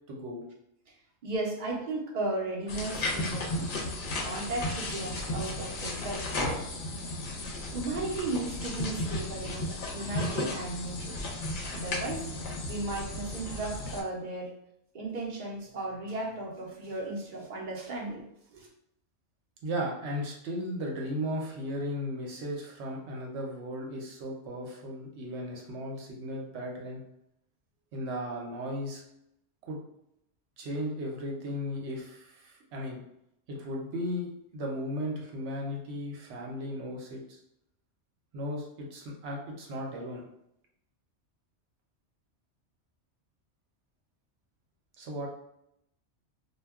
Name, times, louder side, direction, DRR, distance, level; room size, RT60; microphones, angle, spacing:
voice 1, 0.1-0.4 19.6-27.0 27.9-29.0 29.6-29.8 30.6-33.0 33.5-37.4 38.3-40.2 45.0-45.3, equal, 75° right, 0 dB, 1.0 m, -36 dB
voice 2, 1.2-3.7 4.2-6.6 7.7-11.2 11.7-12.3 12.7-14.6 14.9-18.2 18.5-18.7, right 2 dB, 50° right, -2 dB, 0.7 m, -35 dB
sound 1, 2.7-14.0, left 2 dB, 55° left, 0.7 m, -34 dB
2.2 x 2.2 x 3.4 m, 0.79 s
omnidirectional pair, 1.2 m